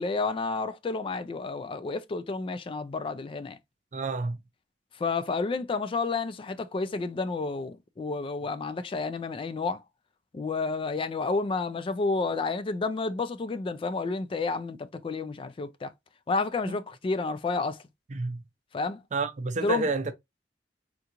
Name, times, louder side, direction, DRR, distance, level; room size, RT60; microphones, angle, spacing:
voice 1, 0.0-3.6 5.0-9.8 10.3-15.9 16.3-17.8 18.7-19.0 19.6-19.9, left 3 dB, 30° left, 0.3 m, -30 dB
voice 2, 3.9-4.4 16.7-16.8 18.1-18.4 19.1-20.1, right 3 dB, 45° right, 0.5 m, -29 dB
3.7 x 2.4 x 2.8 m
head